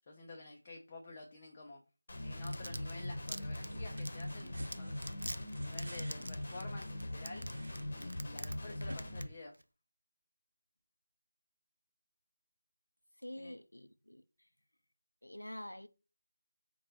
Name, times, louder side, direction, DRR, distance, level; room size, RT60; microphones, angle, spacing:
voice 1, 0.1-1.8 2.2-5.0 5.5-7.5 7.9-9.5 13.3-13.5, left 2 dB, 25° left, 0.4 m, -50 dB
Guitar, 2.1-9.2, left 1 dB, 45° left, 0.8 m, -41 dB
Domestic sounds home sounds, 2.2-8.5 8.8-9.2 9.5-9.6, right 1 dB, 75° right, 0.3 m, -43 dB
sound 1, 3.5-8.5 8.8-9.0, right 1 dB, 50° right, 1.1 m, -52 dB
voice 2, 13.2-14.2 15.2-15.9, left 1 dB, 85° left, 0.4 m, -46 dB
4.3 x 2.2 x 3.0 m
figure-of-eight pair, 165°, 0 cm